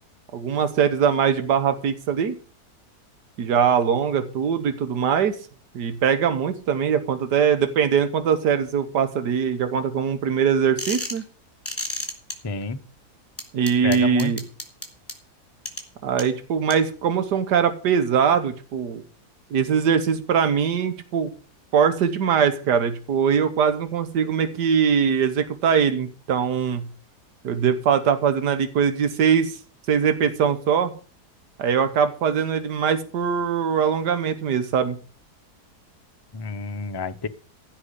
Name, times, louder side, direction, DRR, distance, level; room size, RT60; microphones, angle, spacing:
voice 1, 0.3-2.4 3.4-5.4 5.7-11.2 13.5-14.4 16.0-19.0 19.5-21.3 21.7-26.8 27.4-29.6 29.9-30.9 31.6-35.0, right 7 dB, 90° right, 10 dB, 1.8 m, -22 dB
sound 1, 10.8-11.2 11.6-12.3 13.4-15.1 15.6-15.8 16.2-16.3 16.7-16.8, left 1 dB, 10° left, 3.0 m, -30 dB
voice 2, 12.4-12.8 13.8-14.3 36.3-37.3, left 4 dB, 25° left, 10 dB, 0.5 m, -29 dB
15.5 x 5.8 x 8.2 m, 0.40 s
omnidirectional pair, 1.7 m